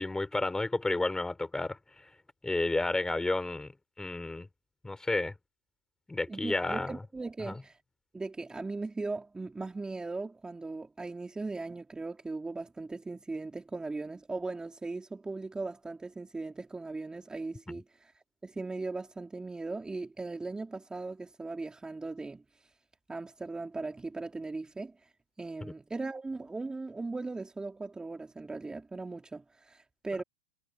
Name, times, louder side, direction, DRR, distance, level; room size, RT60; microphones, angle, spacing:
voice 1, 0.0-1.8 2.4-3.7 4.0-4.5 4.8-5.3 6.1-7.0 7.5-7.6 17.7-17.8 25.6-25.7, left 2 dB, 10° left, 3.8 m, -31 dB
voice 2, 6.3-7.8 8.1-18.1 18.4-22.4 23.1-25.0 25.4-30.2, right 3 dB, 10° right, 2.9 m, -38 dB
hypercardioid pair, 95°, 7 cm